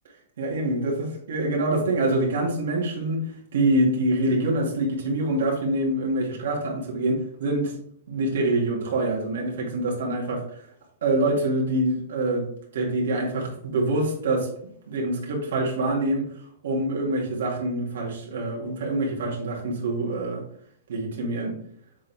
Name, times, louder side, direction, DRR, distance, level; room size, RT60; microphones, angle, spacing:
voice 1, 0.4-7.8 8.1-10.4 11.0-12.5 12.7-14.5 14.9-16.3 16.6-20.4 20.9-21.6, right 1 dB, 75° right, -1 dB, 2.4 m, -25 dB
7.4 x 4.5 x 3.5 m, 0.64 s
supercardioid pair, 180°, 0 cm